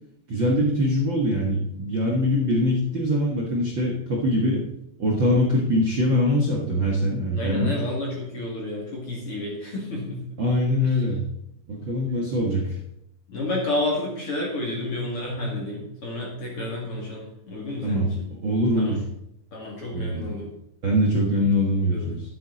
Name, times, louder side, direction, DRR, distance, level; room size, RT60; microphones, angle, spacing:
voice 1, 0.3-4.7 5.0-7.7 10.4-11.2 11.7-12.8 17.8-18.1 18.4-19.0 19.9-20.3 20.8-22.2, left 1 dB, 55° right, -2 dB, 1.3 m, -23 dB
voice 2, 7.3-10.2 10.8-11.0 11.8-11.9 13.3-18.3 18.8-19.0 19.5-20.5 21.9-22.1, left 2 dB, 40° left, -3 dB, 2.9 m, -30 dB
12.0 x 9.4 x 4.1 m, 0.77 s
omnidirectional pair, 4.5 m